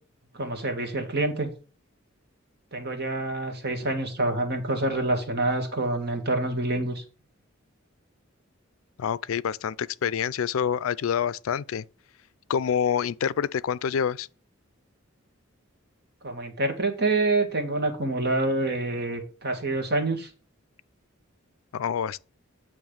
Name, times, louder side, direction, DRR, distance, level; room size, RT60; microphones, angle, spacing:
voice 1, 0.3-1.5 2.7-7.0 16.2-20.3, right 2 dB, 55° right, 1.5 m, -27 dB
voice 2, 9.0-11.8 12.5-14.3 21.7-22.2, left 8 dB, 80° left, 0.4 m, -27 dB
8.9 x 3.1 x 6.4 m
head